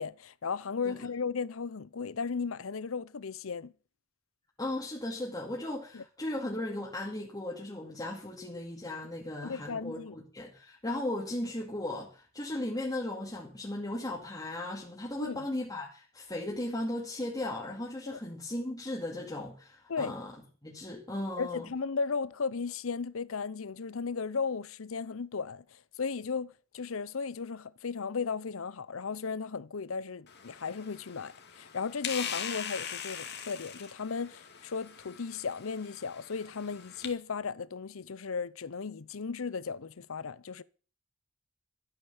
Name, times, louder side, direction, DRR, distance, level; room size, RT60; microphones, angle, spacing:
voice 1, 0.0-3.7 5.9-6.0 9.4-10.2 15.2-15.5 18.1-18.2 19.9-20.2 21.4-25.6 26.0-40.6, left 5 dB, 85° left, 0.7 m, -35 dB
voice 2, 4.6-20.3 20.6-21.7, left 1 dB, 20° left, 2.3 m, -36 dB
sound 1, 30.3-37.1, left 8 dB, 55° left, 2.4 m, -42 dB
13.5 x 9.1 x 7.1 m
head